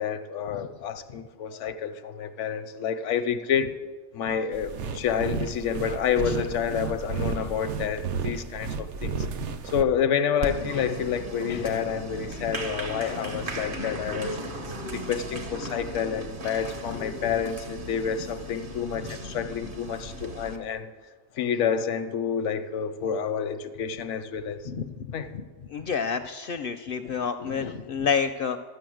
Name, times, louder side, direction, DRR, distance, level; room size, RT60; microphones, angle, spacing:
voice 1, 0.0-3.8 4.1-9.3 9.6-14.4 14.9-20.9 21.3-24.7 25.1-25.3 27.0-27.1 27.4-27.7, left 7 dB, 80° left, 11 dB, 1.0 m, -29 dB
sound 1, 4.5-9.8, right 5 dB, 75° right, 0.9 m, -32 dB
Applause, 10.4-20.6, equal, 50° right, 1.1 m, -36 dB
voice 2, 24.7-25.1 25.7-28.6, left 6 dB, 60° left, 9 dB, 0.6 m, -28 dB
12.5 x 6.6 x 7.7 m, 1.5 s
omnidirectional pair, 1.2 m